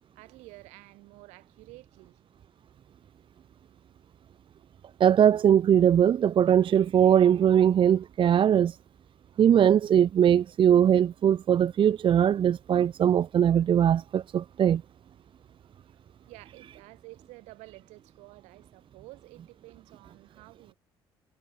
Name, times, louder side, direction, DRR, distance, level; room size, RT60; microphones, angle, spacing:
voice 1, 0.2-2.2 15.6-20.8, right 22 dB, 70° right, 7.3 m, -51 dB
voice 2, 5.0-8.8 9.4-14.8, right 9 dB, 45° right, 0.5 m, -21 dB
hypercardioid pair, 50°, 12 cm